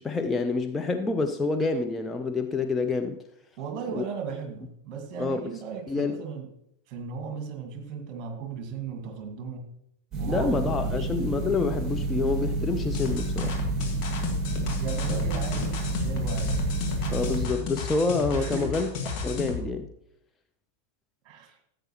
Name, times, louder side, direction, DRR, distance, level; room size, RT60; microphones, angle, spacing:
voice 1, 0.0-3.2 3.9-4.0 5.2-5.6 5.9-6.2 10.3-13.6 17.1-18.9 19.2-19.9, left 3 dB, 15° left, 0.5 m, -27 dB
voice 2, 3.6-6.5 6.9-9.7 10.2-11.1 14.8-16.6 18.3-18.7 21.3-21.6, right 6 dB, 35° right, 1.9 m, -36 dB
sound 1, 10.1-17.5, right 2 dB, 20° right, 2.2 m, -29 dB
sound 2, 12.9-19.7, left 4 dB, 40° left, 2.0 m, -33 dB
14.5 x 7.8 x 3.1 m
figure-of-eight pair, 90°, 0 cm